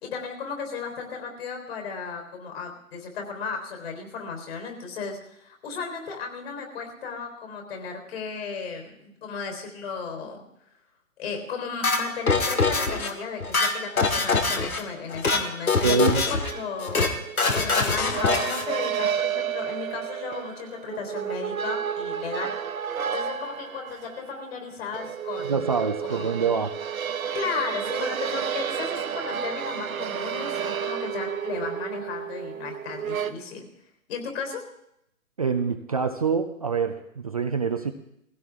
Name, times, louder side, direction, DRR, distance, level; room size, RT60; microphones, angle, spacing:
voice 1, 0.0-10.4 11.2-17.0 17.5-22.5 23.1-25.6 26.0-26.3 27.3-33.7 34.1-34.6, left 5 dB, 45° left, 3 dB, 4.0 m, -35 dB
sound 1, 11.8-13.1 13.4-14.8 15.1-15.4 15.7-16.5 16.8-17.1 17.4-18.7, left 3 dB, 80° left, 2.1 m, -23 dB
voice 2, 15.8-16.2 25.4-26.7 35.4-37.9, right 5 dB, 25° right, 6 dB, 0.5 m, -25 dB
sound 2, 16.4-33.3, right 8 dB, 70° right, 1.1 m, -31 dB
20.0 x 16.0 x 3.6 m, 0.78 s
hypercardioid pair, 145°, 42 cm